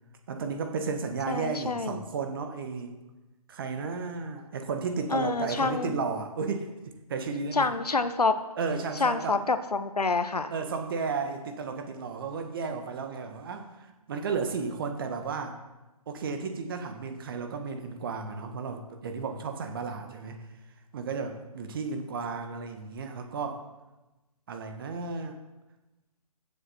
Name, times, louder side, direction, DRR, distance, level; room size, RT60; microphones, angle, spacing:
voice 1, 0.3-2.9 3.5-7.7 8.6-9.4 10.5-15.6 16.1-20.4 20.9-23.6 24.5-25.4, right 5 dB, 35° right, 6 dB, 1.3 m, -33 dB
voice 2, 1.3-2.0 5.1-6.0 7.5-8.4 9.0-10.5, left 4 dB, 75° left, 11 dB, 1.1 m, -27 dB
15.5 x 7.2 x 4.2 m, 1.1 s
figure-of-eight pair, 145°, 20 cm